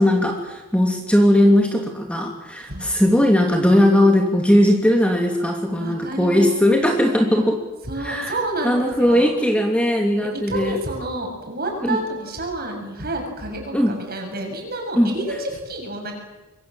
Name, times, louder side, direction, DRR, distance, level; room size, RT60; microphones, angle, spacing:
voice 1, 0.0-7.6 8.0-8.3 8.6-10.8 11.8-12.0 13.7-14.0 15.0-15.1, left 1 dB, 5° left, 2 dB, 2.7 m, -18 dB
voice 2, 5.8-6.7 7.9-9.3 10.5-16.1, right 1 dB, 45° right, 3 dB, 7.1 m, -29 dB
26.0 x 23.5 x 7.7 m, 1.1 s
head